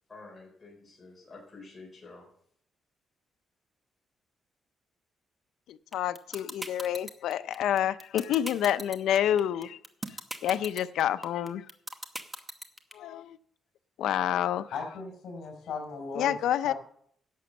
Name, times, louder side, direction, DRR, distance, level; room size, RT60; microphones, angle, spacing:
voice 1, 0.1-2.3, left 3 dB, 15° left, -3 dB, 4.2 m, -49 dB
voice 2, 5.7-9.8 10.4-11.7 12.9-13.4 14.0-14.7 16.1-16.7, left 11 dB, 90° left, 14 dB, 0.5 m, -28 dB
sound 1, 5.9-12.9, right 1 dB, 10° right, 0.9 m, -38 dB
voice 3, 14.7-16.4 16.6-16.7, left 4 dB, 60° left, 2 dB, 4.3 m, -37 dB
11.0 x 6.9 x 7.5 m, 0.66 s
cardioid pair, 155°, 0 cm